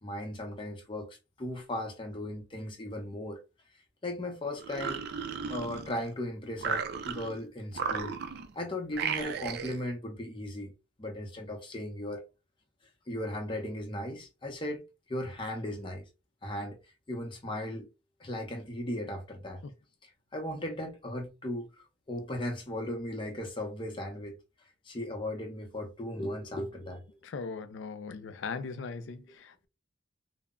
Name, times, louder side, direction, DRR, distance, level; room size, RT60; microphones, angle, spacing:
voice 1, 0.0-3.4 4.0-5.0 5.5-8.1 8.5-10.7 11.0-12.2 13.1-14.8 15.1-16.0 16.4-16.8 17.1-17.9 18.2-19.6 20.0-21.7 22.1-24.3 24.9-27.0, left 1 dB, 25° left, 0.7 m, -37 dB
sound 1, 4.6-6.1 6.6-7.4 7.7-8.5 8.9-9.8, right 6 dB, 55° right, 0.4 m, -35 dB
voice 2, 27.2-29.7, left 4 dB, 65° left, 0.4 m, -39 dB
2.2 x 2.0 x 3.6 m
head